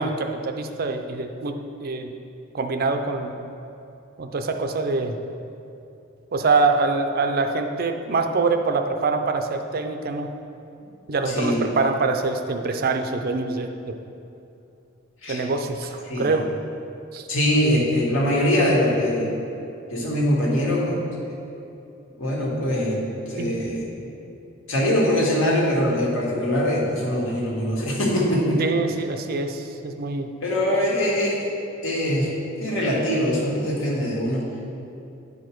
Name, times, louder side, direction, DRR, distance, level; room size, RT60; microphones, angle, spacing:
voice 1, 0.0-2.1 2.5-3.4 4.2-5.2 6.3-10.3 11.1-13.9 15.3-16.5 17.1-17.3 23.4-23.5 28.6-30.3, right 3 dB, 50° right, 6 dB, 0.5 m, -24 dB
voice 2, 17.3-19.3 19.9-21.0 22.2-23.0 23.3-23.8 24.7-28.6 30.4-31.3 31.8-32.3 32.5-34.4, equal, 75° left, -4 dB, 1.8 m, -22 dB
9.8 x 4.8 x 4.5 m, 2.7 s
head